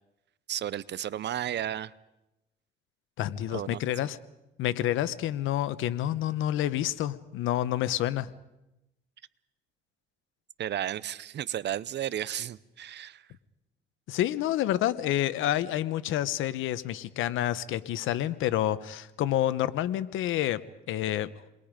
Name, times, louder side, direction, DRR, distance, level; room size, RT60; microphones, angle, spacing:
voice 1, 0.5-1.9 3.5-3.8 10.6-13.3, right 11 dB, 60° right, 19 dB, 0.8 m, -33 dB
voice 2, 3.2-4.2 4.6-8.3 14.1-21.3, left 12 dB, 90° left, 15 dB, 1.0 m, -28 dB
29.0 x 22.0 x 5.1 m, 0.92 s
cardioid pair, 90°, 20 cm